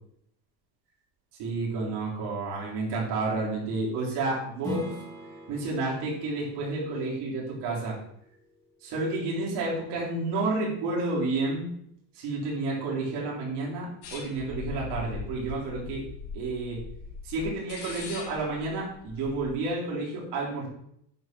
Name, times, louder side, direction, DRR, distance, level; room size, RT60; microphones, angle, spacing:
voice 1, 1.4-4.9 5.5-8.0 8.8-11.7 12.1-16.0 16.3-16.8 17.2-20.7, right 3 dB, 55° right, -5 dB, 3.8 m, -30 dB
Strum, 4.6-9.8, equal, 5° left, 2.6 m, -43 dB
sound 1, 14.0-19.5, left 5 dB, 90° left, 3.6 m, -41 dB
9.4 x 4.5 x 6.0 m, 0.72 s
cardioid pair, 170°, 47 cm